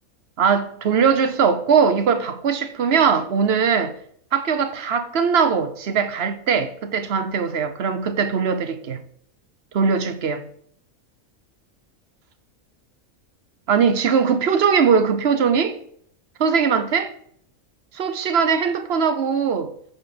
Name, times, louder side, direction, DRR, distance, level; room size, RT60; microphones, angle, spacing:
voice 1, 0.4-3.9 4.3-9.0 9.7-10.4 13.7-15.8 16.4-17.1 17.9-19.7, right 6 dB, 50° right, 1.1 m, -20 dB
9.2 x 4.3 x 7.0 m
omnidirectional pair, 1.4 m